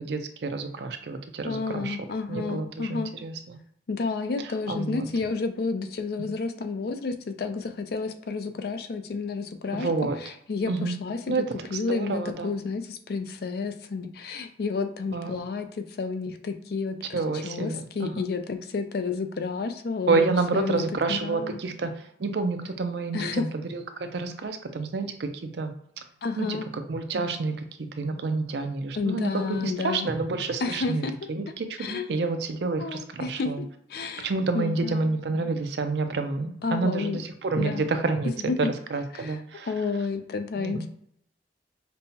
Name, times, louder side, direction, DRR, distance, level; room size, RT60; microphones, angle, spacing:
voice 1, 0.0-2.0 2.3-3.6 4.7-5.1 9.7-10.2 10.7-10.9 11.3-11.4 11.7-12.5 15.1-15.4 17.1-18.1 20.1-21.9 22.2-25.7 26.4-26.6 26.9-31.0 31.3-33.6 34.2-38.3 38.6-39.7 40.6-40.9, right 3 dB, 70° right, 8 dB, 0.5 m, -29 dB
voice 2, 1.4-3.1 3.9-9.9 10.2-11.3 11.7-21.6 23.1-23.5 26.2-26.7 29.0-30.1 30.6-31.1 31.8-32.1 32.8-34.3 34.5-35.1 36.6-37.2 37.6-37.9 38.2-38.7 39.1-39.4 39.7-40.9, left 4 dB, 60° left, 8 dB, 0.4 m, -31 dB
5.3 x 2.1 x 2.8 m, 0.70 s
head